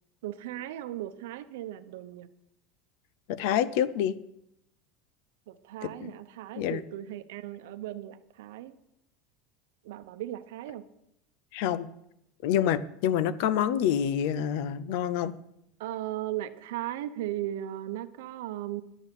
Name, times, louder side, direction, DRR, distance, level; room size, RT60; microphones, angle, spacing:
voice 1, 0.2-2.3 5.5-8.8 9.8-10.8 15.8-18.8, right 13 dB, 80° right, 12 dB, 0.9 m, -37 dB
voice 2, 3.3-4.2 5.8-6.1 6.6-6.8 11.5-11.9 12.4-15.3, left 9 dB, 55° left, 17 dB, 0.6 m, -27 dB
11.0 x 8.2 x 7.1 m, 0.79 s
supercardioid pair, 180°, 0 cm